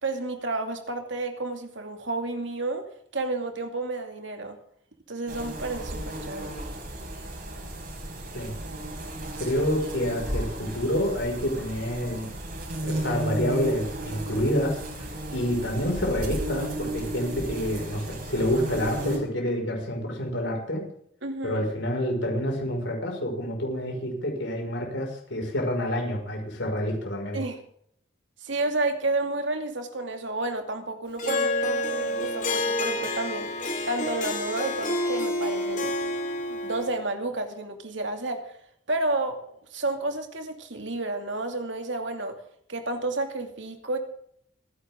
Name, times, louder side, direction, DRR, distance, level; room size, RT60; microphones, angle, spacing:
voice 1, 0.0-4.6 5.1-6.5 21.2-21.6 27.3-27.6 28.4-33.5 33.9-35.9 36.5-38.5 38.9-39.4 39.7-42.4 42.7-44.0, right 2 dB, 70° right, 2.5 m, -31 dB
sound 1, 5.3-19.2, right 1 dB, 50° right, 6.0 m, -34 dB
voice 2, 9.4-12.3 12.8-20.9 21.4-27.4, equal, 70° left, 5.7 m, -28 dB
Harp, 31.2-37.0, left 1 dB, 40° left, 2.9 m, -28 dB
26.0 x 11.0 x 3.8 m
head